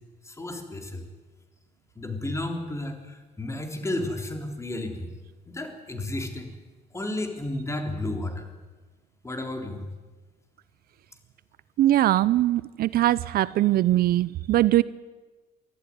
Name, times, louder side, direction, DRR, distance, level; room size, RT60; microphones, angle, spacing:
voice 1, 0.2-1.1 2.0-5.1 5.5-6.5 6.9-8.5 9.2-9.8, left 1 dB, 15° left, 5 dB, 3.6 m, -32 dB
voice 2, 11.8-14.8, right 14 dB, 65° right, 19 dB, 0.6 m, -21 dB
23.5 x 14.0 x 9.7 m, 1.3 s
cardioid pair, 110°, 17 cm